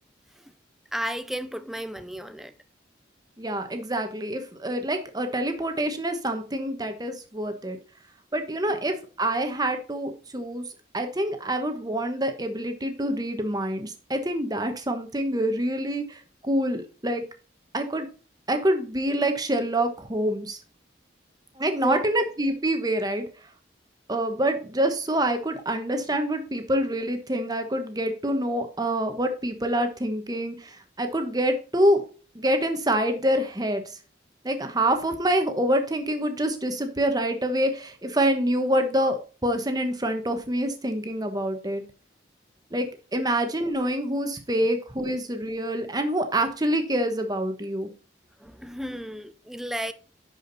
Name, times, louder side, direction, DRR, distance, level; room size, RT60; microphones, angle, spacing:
voice 1, 0.9-2.5 21.8-22.0 45.0-45.1 48.4-49.9, equal, ahead, 0.5 m, -33 dB
voice 2, 3.4-7.8 8.3-10.7 10.9-17.2 17.7-18.1 18.5-20.6 21.6-23.2 24.1-32.0 32.3-34.0 34.4-41.8 42.7-47.9, right 1 dB, 20° right, 1.1 m, -26 dB
10.5 x 5.0 x 4.0 m
head